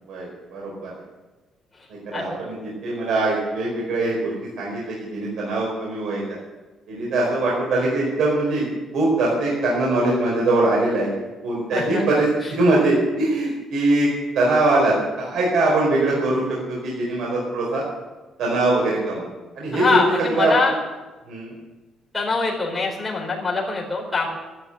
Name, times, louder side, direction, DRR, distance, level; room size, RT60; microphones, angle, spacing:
voice 1, 0.1-0.9 2.1-4.3 4.6-6.4 6.9-8.7 8.9-11.1 11.4-14.1 14.3-17.8 18.4-19.3 19.5-20.0 20.4-20.7 21.3-21.5, right 2 dB, 70° right, -3 dB, 4.6 m, -22 dB
voice 2, 11.7-12.2 19.7-20.7 22.1-24.3, left 3 dB, 10° left, -3 dB, 4.4 m, -23 dB
13.0 x 12.0 x 8.0 m, 1.2 s
cardioid pair, 160°, 0 cm